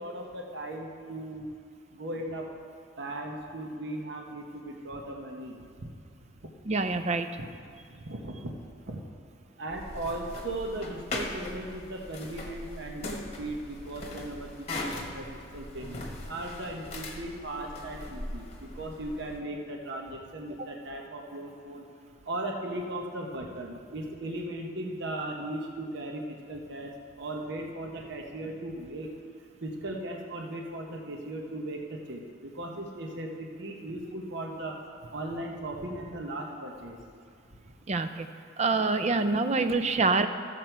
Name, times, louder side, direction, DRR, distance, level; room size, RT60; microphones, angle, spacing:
voice 1, 0.0-1.5 1.9-2.5 3.0-5.6 5.8-5.9 7.9-8.5 8.9-9.0 9.6-21.8 22.3-29.1 29.6-34.8 35.1-37.0, right 1 dB, 60° right, 1 dB, 1.0 m, -37 dB
voice 2, 6.7-7.3 37.9-38.3 38.6-40.3, right 3 dB, 35° right, 9 dB, 0.5 m, -26 dB
sound 1, 9.7-19.4, left 2 dB, 30° left, 1.2 m, -40 dB
14.0 x 7.5 x 4.5 m, 2.3 s
head